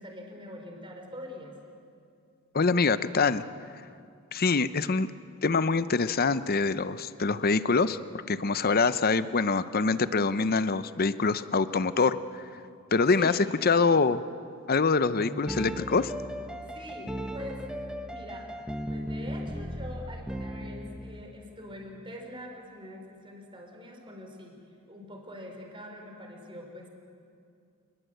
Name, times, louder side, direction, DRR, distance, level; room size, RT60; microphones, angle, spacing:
voice 1, 0.0-1.6 13.2-13.4 16.6-17.7 18.1-24.6 24.9-26.9, left 1 dB, 25° right, 2 dB, 4.2 m, -44 dB
voice 2, 2.5-3.4 4.3-5.1 5.4-8.0 8.3-12.2 12.9-14.2 14.7-16.1, left 4 dB, 45° left, 13 dB, 0.7 m, -25 dB
sound 1, 15.2-21.2, equal, 5° right, 1.3 m, -36 dB
28.0 x 20.5 x 8.1 m, 2.4 s
head